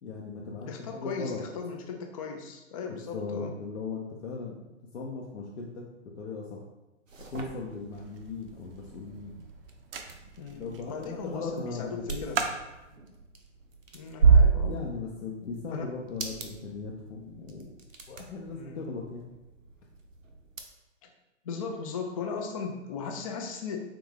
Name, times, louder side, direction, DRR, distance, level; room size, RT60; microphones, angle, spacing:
voice 1, 0.0-1.4 2.9-5.8 6.2-6.6 7.3-9.3 10.5-12.4 14.6-17.7 18.1-19.3, left 4 dB, 65° left, -3 dB, 0.7 m, -38 dB
voice 2, 0.7-3.5 10.4-12.4 13.9-14.8 15.7-15.8 18.5-18.9 21.0-21.1 21.4-23.8, left 5 dB, 30° left, 3 dB, 0.4 m, -37 dB
sound 1, 7.1-20.6, right 5 dB, 90° right, 0.7 m, -31 dB
sound 2, 7.9-13.0, right 6 dB, 50° right, 0.5 m, -40 dB
3.7 x 3.4 x 3.3 m, 1.0 s
figure-of-eight pair, 120°, 38 cm